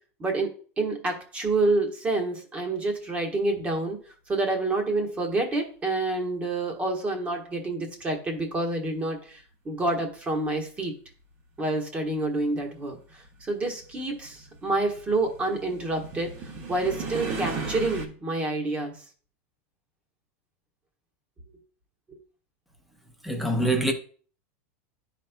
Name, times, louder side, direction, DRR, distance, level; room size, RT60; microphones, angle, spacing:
voice 1, 0.2-4.0 4.3-10.9 11.6-19.0 22.1-22.2, right 2 dB, 15° right, 1.2 m, -28 dB
sound 1, 10.8-10.9 12.0-18.1, right 4 dB, 35° right, 1.2 m, -36 dB
voice 2, 23.2-23.9, right 1 dB, ahead, 0.8 m, -24 dB
11.5 x 4.2 x 2.2 m
supercardioid pair, 155°, 7 cm